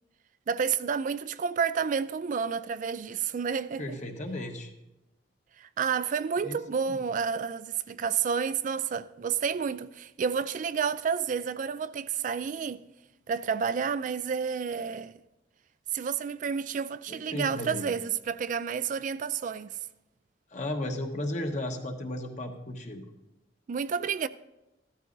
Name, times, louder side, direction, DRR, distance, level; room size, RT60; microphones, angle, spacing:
voice 1, 0.5-4.0 5.6-12.8 13.3-15.2 15.9-19.7 23.7-24.3, right 6 dB, 45° right, 0.3 m, -30 dB
voice 2, 3.8-4.7 6.4-6.6 6.9-7.0 17.1-17.9 20.5-23.0, left 1 dB, 40° left, 1.3 m, -34 dB
15.0 x 13.0 x 2.6 m
head